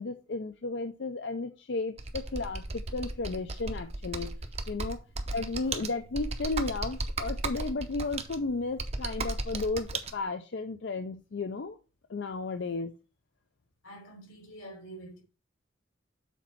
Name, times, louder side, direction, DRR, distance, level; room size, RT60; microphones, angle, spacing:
voice 1, 0.0-4.3 4.7-5.0 5.3-11.8 12.1-12.9, left 3 dB, 60° left, 0.5 m, -34 dB
Computer keyboard, 2.0-10.1, right 3 dB, 30° right, 0.6 m, -36 dB
voice 2, 13.8-15.2, right 1 dB, 85° left, 2.8 m, -47 dB
7.1 x 4.2 x 4.3 m
head